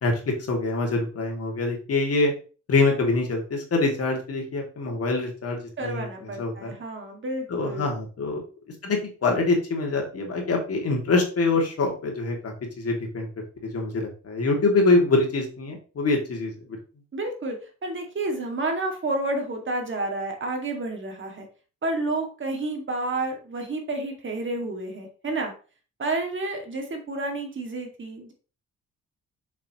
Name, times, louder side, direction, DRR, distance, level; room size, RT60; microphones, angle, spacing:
voice 1, 0.0-2.3 2.7-6.8 7.5-8.4 8.8-13.3 13.6-16.5, left 3 dB, 50° left, 1 dB, 2.5 m, -25 dB
voice 2, 5.8-7.9 17.1-17.6 17.8-21.5 21.8-25.5 26.0-28.3, right 2 dB, 40° right, 2 dB, 2.3 m, -30 dB
7.2 x 6.0 x 3.1 m, 0.36 s
cardioid pair, 90°, 30 cm